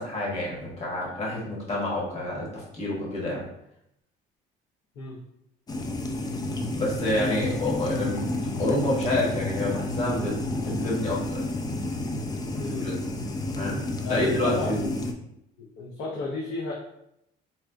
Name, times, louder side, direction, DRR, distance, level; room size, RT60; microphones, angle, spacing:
voice 1, 0.0-3.4 6.7-8.2 8.6-10.4 10.6-11.4 12.6-12.9 13.6-13.8 14.1-14.9, left 1 dB, 40° left, -4 dB, 1.4 m, -28 dB
sound 1, 5.7-15.1, left 1 dB, 25° left, 0.4 m, -30 dB
voice 2, 14.0-15.1 15.6-16.7, left 3 dB, 75° left, -3 dB, 0.6 m, -33 dB
4.1 x 2.3 x 2.5 m, 0.79 s
cardioid pair, 110°, 17 cm